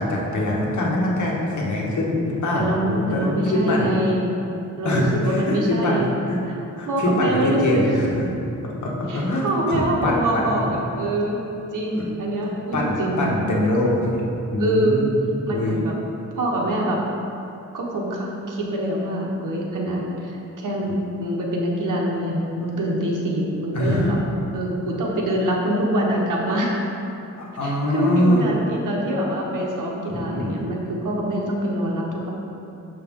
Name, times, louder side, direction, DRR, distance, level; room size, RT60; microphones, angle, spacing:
voice 1, 0.0-3.9 4.8-6.4 6.8-8.3 8.6-10.6 12.4-14.3 14.5-15.2 15.5-15.7 23.7-24.1 27.4-28.4 30.1-30.6, left 1 dB, 65° left, -3 dB, 1.4 m, -23 dB
voice 2, 2.5-4.3 4.8-6.1 6.5-6.6 6.9-7.8 9.1-11.4 11.7-13.4 14.6-15.0 15.5-15.9 16.4-17.0 17.7-24.2 24.5-26.8 27.6-32.3, right 1 dB, 85° right, -2 dB, 1.2 m, -25 dB
6.9 x 5.6 x 3.7 m, 2.8 s
wide cardioid pair, 120°, 31 cm